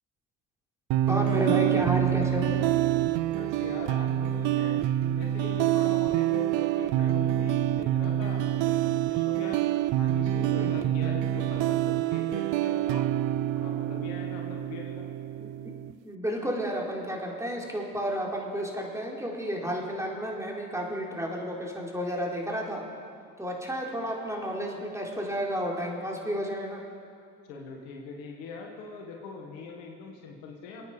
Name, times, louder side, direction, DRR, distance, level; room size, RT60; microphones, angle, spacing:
sound 1, 0.9-15.9, right 12 dB, 65° right, 0.6 m, -26 dB
voice 1, 1.1-2.5 10.6-10.9 15.4-15.5 16.0-22.8 23.4-26.8, equal, 5° right, -2 dB, 4.1 m, -31 dB
voice 2, 3.3-4.8 5.2-9.6 10.0-13.0 13.6-15.1 27.5-30.8, left 4 dB, 90° left, 0 dB, 2.0 m, -42 dB
27.5 x 9.2 x 5.1 m, 2.4 s
hypercardioid pair, 55°, 48 cm